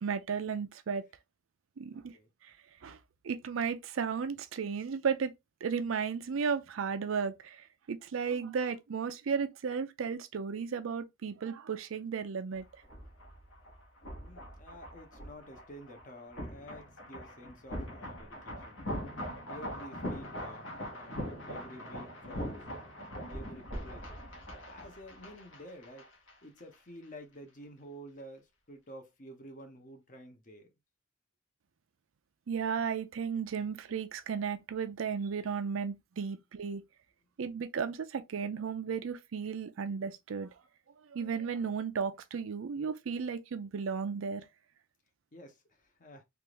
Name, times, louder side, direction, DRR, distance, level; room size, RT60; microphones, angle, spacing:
voice 1, 0.0-1.1 1.8-2.2 2.4-2.5 2.8-3.0 3.2-5.3 5.6-12.8 32.5-36.8 37.4-40.5 41.0-44.5, right 6 dB, 80° right, 0.5 m, -34 dB
sound 1, 12.5-26.3 26.6-26.7, equal, 70° left, 1.3 m, -42 dB
voice 2, 14.2-18.8 19.5-20.7 20.9-22.5 23.3-24.0 24.6-26.1 26.4-30.7 45.3-46.2, equal, 40° left, 0.8 m, -50 dB
3.4 x 2.5 x 3.0 m
head